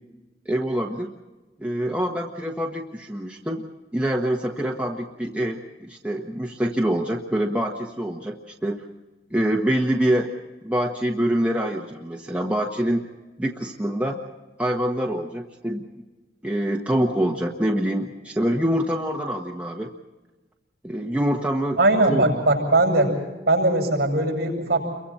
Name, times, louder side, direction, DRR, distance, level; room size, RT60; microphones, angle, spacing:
voice 1, 0.4-1.1 1.6-3.6 3.9-8.8 9.3-10.3 10.6-13.0 13.4-14.2 14.6-15.9 16.4-19.9 20.8-21.8 22.1-22.2, right 1 dB, 10° right, -1 dB, 1.3 m, -25 dB
voice 2, 21.8-23.1 23.5-24.8, right 2 dB, 60° right, 2 dB, 7.6 m, -20 dB
29.5 x 23.5 x 4.3 m, 1.2 s
head